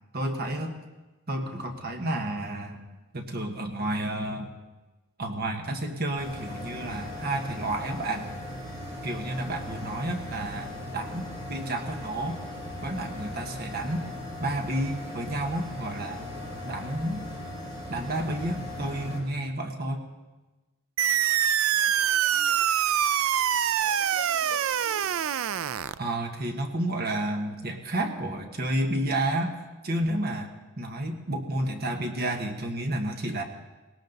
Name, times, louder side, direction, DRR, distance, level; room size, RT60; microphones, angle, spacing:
voice 1, 0.1-0.8 1.3-2.8 3.1-4.5 5.2-8.3 9.0-12.4 12.8-14.0 14.4-16.3 16.7-17.2 17.9-20.0 26.0-29.5 29.8-30.5 30.8-33.4, right 1 dB, 50° right, 4 dB, 1.5 m, -31 dB
sound 1, 6.2-19.2, left 1 dB, 30° right, 4.0 m, -38 dB
sound 2, 21.0-26.0, right 10 dB, 85° right, 0.4 m, -25 dB
voice 2, 21.7-22.7 23.8-25.2, left 2 dB, 55° left, -2 dB, 5.4 m, -47 dB
19.5 x 18.0 x 4.0 m, 1.1 s
head